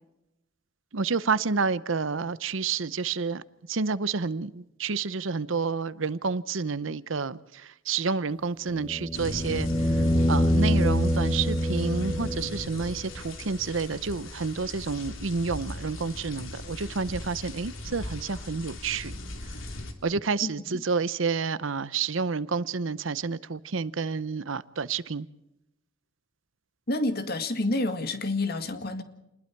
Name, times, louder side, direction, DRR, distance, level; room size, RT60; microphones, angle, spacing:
voice 1, 0.9-3.4 3.7-19.2 20.0-25.3, right 4 dB, 75° right, 0.8 m, -29 dB
sound 1, 8.7-12.8 15.2-15.3, equal, 10° left, 1.4 m, -25 dB
sound 2, 9.1-19.9, left 1 dB, 80° left, 2.9 m, -37 dB
voice 2, 20.4-20.8 26.9-29.0, left 2 dB, 50° left, 2.0 m, -29 dB
28.0 x 20.5 x 4.6 m
head